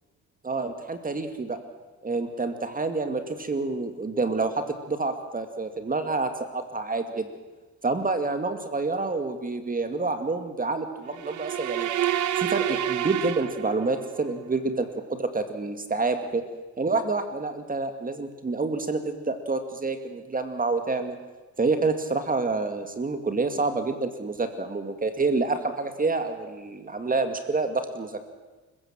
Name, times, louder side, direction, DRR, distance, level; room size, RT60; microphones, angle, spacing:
voice 1, 0.4-1.6 2.0-7.3 7.8-11.9 12.4-16.4 16.8-21.2 21.6-28.2, right 3 dB, 30° right, 7 dB, 2.2 m, -28 dB
sound 1, 11.1-14.2, right 12 dB, 75° right, 1.2 m, -28 dB
28.0 x 15.5 x 7.5 m, 1.2 s
cardioid pair, 90°, 30 cm